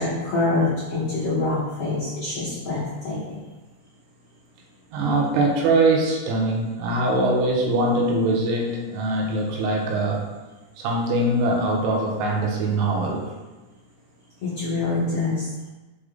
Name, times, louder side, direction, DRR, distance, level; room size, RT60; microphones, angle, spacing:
voice 1, 0.0-3.4 14.4-15.5, left 3 dB, 85° left, -9 dB, 1.3 m, -25 dB
voice 2, 4.9-10.3 10.8-13.4, right 2 dB, 80° right, 0 dB, 2.9 m, -22 dB
6.0 x 4.8 x 3.7 m, 1.2 s
omnidirectional pair, 4.9 m